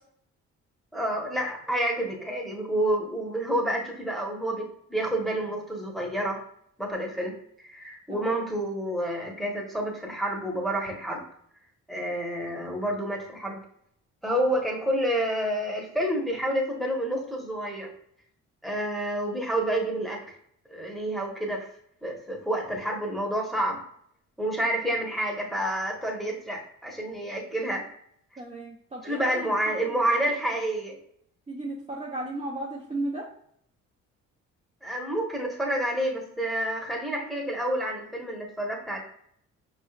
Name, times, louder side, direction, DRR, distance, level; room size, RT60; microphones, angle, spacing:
voice 1, 0.9-6.4 6.8-7.3 7.6-11.2 11.9-13.6 14.2-17.9 18.6-20.2 20.7-21.7 22.0-23.8 24.4-27.8 29.0-31.0 34.8-39.0, right 1 dB, ahead, -1 dB, 1.1 m, -29 dB
voice 2, 28.4-29.5 29.8-30.0 31.5-33.3, right 2 dB, 20° right, -4 dB, 0.7 m, -35 dB
5.1 x 3.3 x 2.4 m, 0.68 s
cardioid pair, 90°, 30 cm